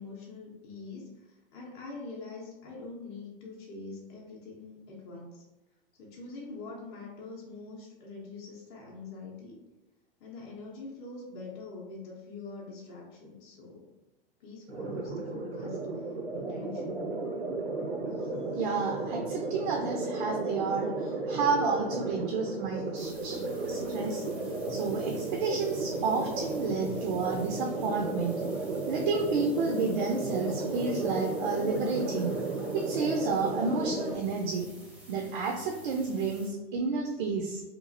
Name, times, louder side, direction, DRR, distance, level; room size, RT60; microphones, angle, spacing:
voice 1, 0.0-5.4 6.0-9.6 10.2-13.9 14.4-16.0 16.3-17.0, left 3 dB, 35° left, -3 dB, 0.7 m, -44 dB
sound 1, 14.7-34.1, right 3 dB, 85° right, 0.7 m, -34 dB
voice 2, 18.5-24.2 24.7-28.4 28.9-32.4 32.7-34.7 35.1-37.6, right 4 dB, 55° right, 2 dB, 0.5 m, -31 dB
sound 2, 22.9-36.5, right 3 dB, 5° right, 0.6 m, -52 dB
2.9 x 2.4 x 2.5 m, 1.1 s
hypercardioid pair, 105°, 31 cm